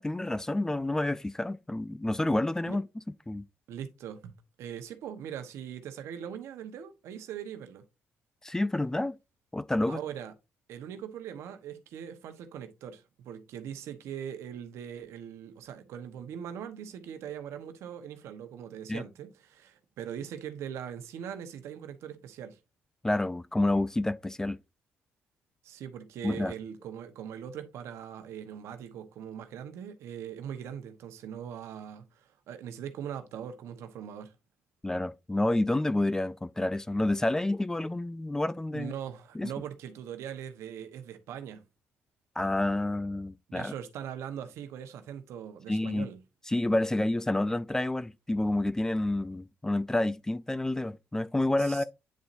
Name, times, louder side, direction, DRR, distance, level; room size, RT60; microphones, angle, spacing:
voice 1, 0.0-2.9 3.3-3.4 8.4-9.2 9.5-10.0 18.9-19.0 23.0-24.6 26.2-26.5 34.8-38.9 39.3-39.5 42.4-43.7 45.7-46.1 46.5-51.8, left 1 dB, 10° left, 0.4 m, -29 dB
voice 2, 3.7-4.3 4.6-7.8 9.9-10.3 10.7-22.6 25.6-34.3 38.7-41.6 43.5-46.2 51.6-51.8, right 9 dB, 85° right, 1.0 m, -41 dB
9.4 x 4.2 x 2.5 m
cardioid pair, 85°, 5 cm